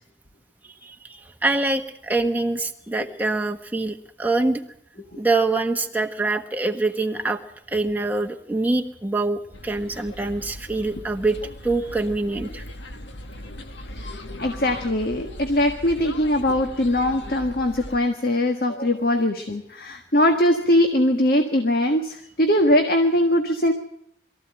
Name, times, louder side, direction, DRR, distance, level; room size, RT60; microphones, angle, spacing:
voice 1, 0.8-4.6 5.2-7.4 7.7-11.4 11.6-12.6, right 2 dB, 10° right, 4 dB, 1.3 m, -24 dB
sound 1, 9.5-18.0, left 1 dB, 85° left, 1.7 m, -39 dB
voice 2, 13.9-23.7, left 1 dB, 55° left, 6 dB, 1.5 m, -21 dB
22.5 x 14.5 x 9.0 m, 0.73 s
head